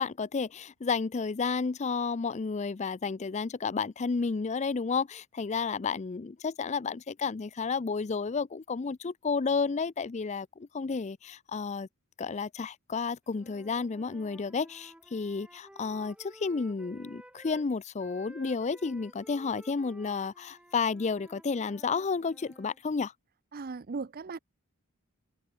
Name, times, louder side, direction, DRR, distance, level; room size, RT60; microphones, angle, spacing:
voice 1, 0.0-11.9 12.2-23.1, left 5 dB, 30° left, 0.4 m, -31 dB
Wind instrument woodwind instrument, 13.3-17.7 18.0-22.8, right 1 dB, 5° right, 2.0 m, -54 dB
voice 2, 23.5-24.4, right 4 dB, 40° right, 0.5 m, -37 dB
head